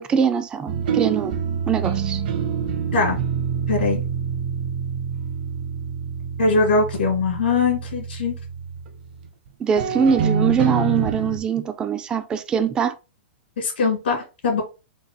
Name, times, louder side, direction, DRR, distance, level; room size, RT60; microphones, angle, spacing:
voice 1, 0.0-1.3 1.7-2.2 9.6-12.9, right 7 dB, 15° right, 0.4 m, -22 dB
sound 1, 0.7-9.5 9.8-11.4, right 7 dB, 60° right, 0.9 m, -26 dB
voice 2, 3.7-4.0 6.4-8.3 13.6-14.6, left 4 dB, 80° left, 2.3 m, -21 dB
4.4 x 2.3 x 4.5 m
hypercardioid pair, 145°, 6 cm